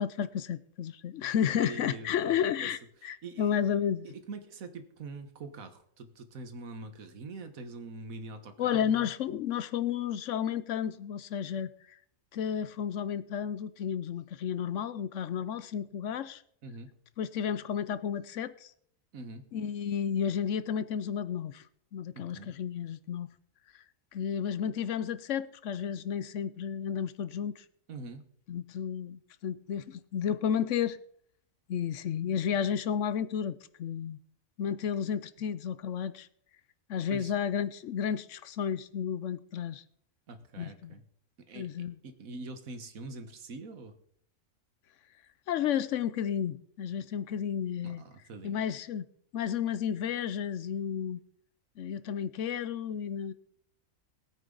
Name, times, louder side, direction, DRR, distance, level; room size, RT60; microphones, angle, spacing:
voice 1, 0.0-4.1 8.6-12.0 12.3-16.4 17.2-18.7 19.5-21.6 21.9-23.3 24.1-27.6 28.5-31.0 31.7-34.2 34.6-36.3 36.9-39.8 40.6-40.9 41.5-42.0 45.5-48.0 48.4-49.1 49.3-51.2 51.8-53.3, left 8 dB, 65° left, 0.9 m, -32 dB
voice 2, 1.6-2.7 3.0-3.5 4.0-9.1 16.6-16.9 19.1-19.5 22.1-22.5 27.9-28.2 37.1-37.3 40.3-41.1 41.5-41.7 42.0-44.0 47.8-48.6, right 3 dB, 85° right, 1.7 m, -44 dB
20.0 x 8.9 x 3.9 m
omnidirectional pair, 1.4 m